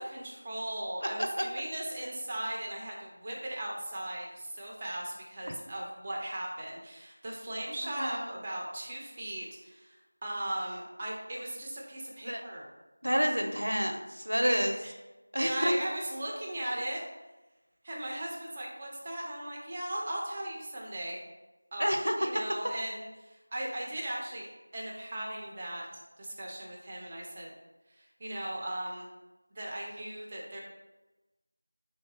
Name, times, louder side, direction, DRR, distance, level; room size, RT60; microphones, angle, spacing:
voice 1, 0.0-12.7 14.4-14.9 15.4-17.0 17.8-21.2 21.7-25.9 26.2-27.5 27.9-29.1 29.5-30.6, right 1 dB, 20° right, -3 dB, 0.4 m, -38 dB
voice 2, 8.0-8.3 12.2-12.4 13.0-14.8 15.3-15.7 21.8-22.1, equal, 90° right, 4 dB, 0.5 m, -29 dB
3.2 x 2.9 x 2.8 m, 1.1 s
figure-of-eight pair, 175°, 0 cm